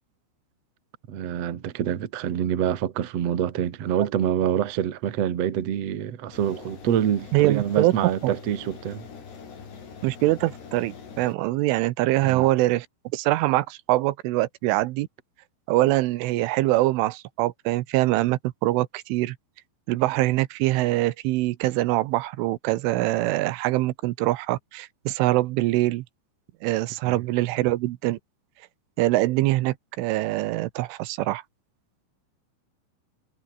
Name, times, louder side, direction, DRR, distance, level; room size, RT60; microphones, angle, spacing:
voice 1, 1.1-9.1 12.2-12.5 27.1-27.2, right 9 dB, 55° right, 1.8 m, -26 dB
sound 1, 6.3-11.3, left 6 dB, 60° left, 7.1 m, -43 dB
voice 2, 7.3-7.9 10.0-12.9 13.1-15.1 15.7-19.4 19.9-26.0 26.6-28.2 29.0-31.4, right 17 dB, 80° right, 3.4 m, -23 dB
omnidirectional pair, 5.7 m